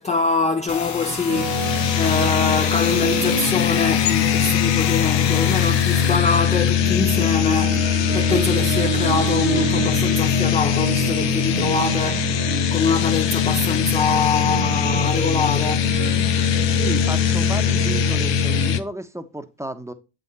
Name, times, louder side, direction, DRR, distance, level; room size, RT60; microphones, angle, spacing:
voice 1, 0.0-12.4 12.7-15.9, left 4 dB, 15° left, 0.5 m, -24 dB
sound 1, 0.7-6.2, left 6 dB, 40° left, 1.0 m, -31 dB
sound 2, 1.3-18.8, left 12 dB, 65° left, 0.8 m, -21 dB
sound 3, 1.3-18.8, right 12 dB, 80° right, 0.6 m, -29 dB
voice 2, 16.7-19.9, right 1 dB, 5° right, 0.8 m, -33 dB
7.4 x 3.8 x 4.1 m
supercardioid pair, 55°, 47 cm